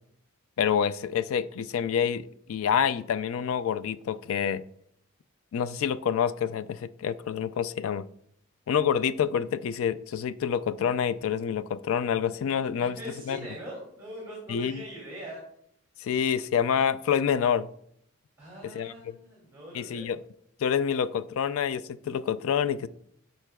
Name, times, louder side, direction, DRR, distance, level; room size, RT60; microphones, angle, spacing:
voice 1, 0.6-4.6 5.5-8.0 8.7-13.0 13.3-13.4 14.5-14.8 16.0-17.7 18.7-18.9 19.7-20.2 20.6-22.9, left 7 dB, 75° left, 14 dB, 0.3 m, -27 dB
voice 2, 12.8-15.4 18.4-20.1, right 1 dB, 15° right, -4 dB, 2.4 m, -42 dB
12.0 x 4.3 x 2.3 m, 0.68 s
head